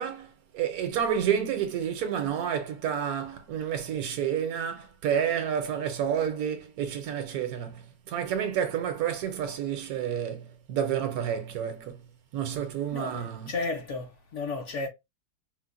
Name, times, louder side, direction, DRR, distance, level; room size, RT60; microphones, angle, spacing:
voice 1, 0.0-12.0 12.3-13.5, right 8 dB, 70° right, 1.1 m, -30 dB
voice 2, 12.9-14.9, left 3 dB, 60° left, 0.9 m, -33 dB
4.5 x 2.1 x 2.4 m
omnidirectional pair, 1.7 m